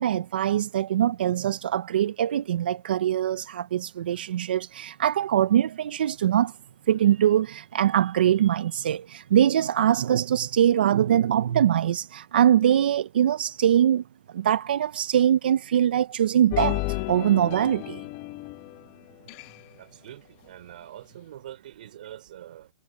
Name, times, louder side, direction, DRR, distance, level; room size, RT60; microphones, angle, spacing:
voice 1, 0.0-6.5 6.9-14.0 14.3-18.1, right 10 dB, 75° right, 0.5 m, -23 dB
sound 1, 16.5-18.9 19.3-19.6, left 19 dB, 30° left, 0.8 m, -32 dB
voice 2, 19.8-22.7, right 12 dB, 60° right, 4.0 m, -44 dB
supercardioid pair, 170°, 5 cm